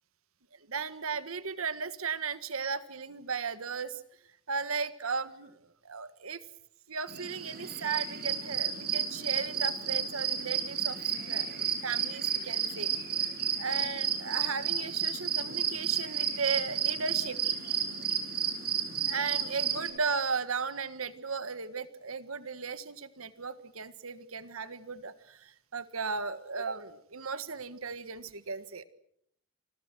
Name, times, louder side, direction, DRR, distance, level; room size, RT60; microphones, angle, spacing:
voice 1, 0.5-4.0 4.5-6.4 6.9-12.9 13.6-17.4 19.0-28.8, right 5 dB, 85° right, 13 dB, 1.6 m, -36 dB
sound 1, 7.1-19.9, right 8 dB, 50° right, 6.9 m, -32 dB
29.0 x 25.5 x 6.2 m, 0.71 s
head